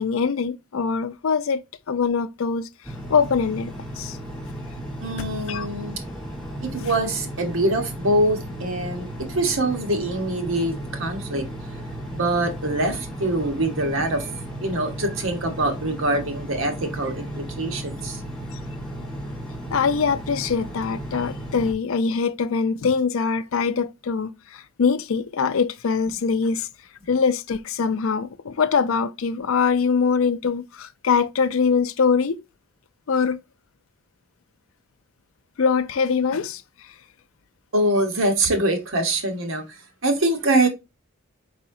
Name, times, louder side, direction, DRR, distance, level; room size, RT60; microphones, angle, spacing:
voice 1, 0.0-2.7 3.1-4.2 4.4-4.5 5.5-5.7 19.7-26.7 27.1-32.4 33.1-33.4 35.6-36.6, left 5 dB, 65° left, 0.4 m, -23 dB
Engine, 2.8-21.7, equal, ahead, 1.4 m, -34 dB
voice 2, 5.0-6.0 6.6-11.4 12.1-14.3 14.6-18.2 37.7-40.7, right 1 dB, 60° right, 1.1 m, -24 dB
4.6 x 4.1 x 2.6 m
head